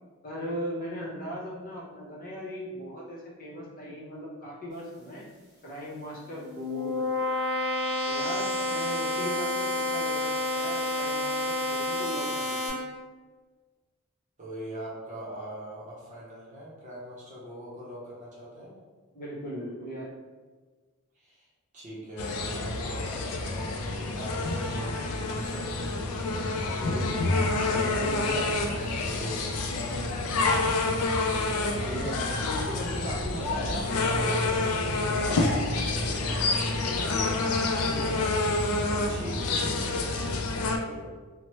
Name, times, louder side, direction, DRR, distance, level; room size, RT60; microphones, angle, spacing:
voice 1, 0.2-5.3 5.6-7.1 8.1-12.7 19.1-20.1 26.6-27.4 27.6-28.5 31.2-38.1, equal, 40° left, -5 dB, 0.7 m, -38 dB
sound 1, 6.2-12.7, left 1 dB, 15° left, 1.2 m, -29 dB
voice 2, 14.4-18.7 21.2-21.5 21.7-26.0 28.3-30.0 38.7-38.8 39.1-41.1, equal, 35° right, -6 dB, 0.8 m, -41 dB
sound 2, 22.2-40.8, left 2 dB, 80° left, 0.4 m, -28 dB
3.0 x 2.1 x 3.0 m, 1.4 s
head